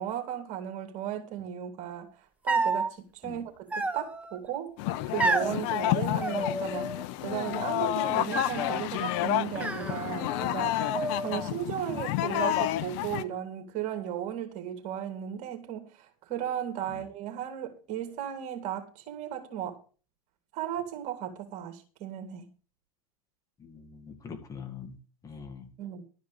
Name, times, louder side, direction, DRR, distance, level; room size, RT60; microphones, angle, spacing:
voice 1, 0.0-4.7 5.1-19.8 20.5-22.5 25.8-26.0, right 10 dB, 40° right, 3.0 m, -36 dB
sound 1, 2.5-2.9 3.7-4.4 5.2-5.6 6.2-7.0 7.3-7.9 8.3-8.9 9.6-10.5 10.8-11.5, right 2 dB, 5° right, 1.2 m, -31 dB
sound 2, 4.8-13.2, left 13 dB, 45° left, 0.7 m, -30 dB
voice 2, 23.6-25.0 25.2-25.7, left 6 dB, 20° left, 1.9 m, -43 dB
12.5 x 5.1 x 8.5 m
hypercardioid pair, 115°, 19 cm